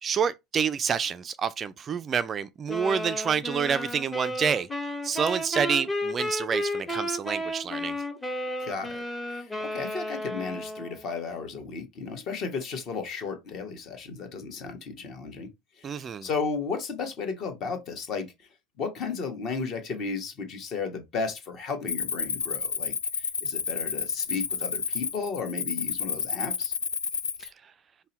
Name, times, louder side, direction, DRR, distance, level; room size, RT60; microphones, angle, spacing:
voice 1, 0.0-4.7 5.0-8.0 15.8-16.3 27.4-27.5, right 7 dB, 30° right, 0.3 m, -28 dB
sound 1, 2.7-11.1, left 1 dB, 10° left, 0.8 m, -33 dB
voice 2, 8.6-9.0 9.3-15.5 15.8-18.3 18.8-26.7, left 5 dB, 40° left, 1.2 m, -34 dB
Cricket, 21.9-27.5, left 6 dB, 75° left, 0.4 m, -30 dB
5.4 x 2.1 x 4.0 m
figure-of-eight pair, 75°, 0 cm